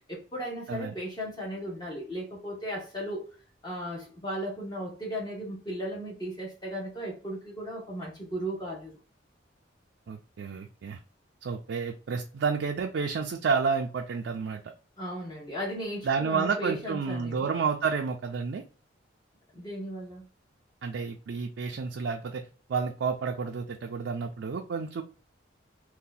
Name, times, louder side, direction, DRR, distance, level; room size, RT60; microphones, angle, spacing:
voice 1, 0.1-3.3 3.6-8.9 15.0-17.5 19.5-20.3, equal, 20° left, 0.6 m, -36 dB
voice 2, 10.1-11.0 11.4-14.7 16.0-18.6 20.8-22.4 22.7-25.0, right 5 dB, 70° right, 0.4 m, -30 dB
2.7 x 2.2 x 3.8 m
head